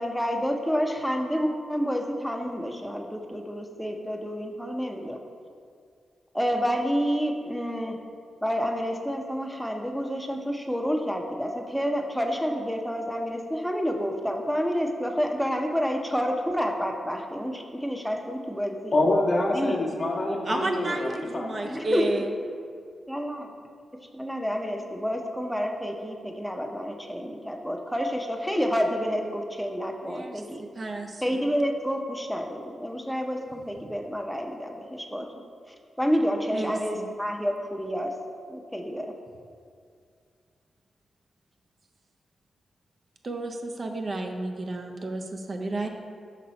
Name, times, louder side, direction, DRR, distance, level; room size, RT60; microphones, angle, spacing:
voice 1, 0.0-5.2 6.3-8.0 8.4-19.0 19.5-19.8 21.7-22.0 23.1-23.5 24.1-30.6 31.2-35.3 36.0-38.1 38.5-39.1, equal, ahead, 2 dB, 0.7 m, -29 dB
voice 2, 18.9-21.7, left 2 dB, 50° left, -2 dB, 1.0 m, -26 dB
voice 3, 20.4-22.3 30.0-31.4 36.5-37.1 43.2-45.9, right 2 dB, 50° right, 3 dB, 0.6 m, -32 dB
5.3 x 4.1 x 4.3 m, 2.2 s
supercardioid pair, 45°, 0 cm